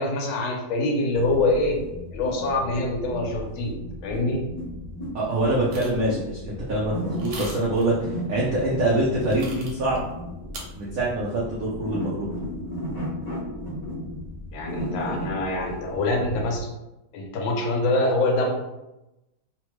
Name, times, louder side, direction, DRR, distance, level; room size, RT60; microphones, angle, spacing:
voice 1, 0.0-1.8 2.1-3.7 4.0-4.4 14.5-16.7 17.1-18.5, left 2 dB, 75° left, 2 dB, 1.4 m, -25 dB
sound 1, 1.1-16.6, left 1 dB, 55° left, 0.4 m, -35 dB
voice 2, 5.1-10.0 10.8-12.3, right 1 dB, 85° right, -6 dB, 0.7 m, -25 dB
sound 2, 5.7-6.0 7.2-7.8 9.2-10.0 10.5-10.6, right 2 dB, 65° right, 1.2 m, -38 dB
3.4 x 2.1 x 3.0 m, 0.94 s
omnidirectional pair, 2.3 m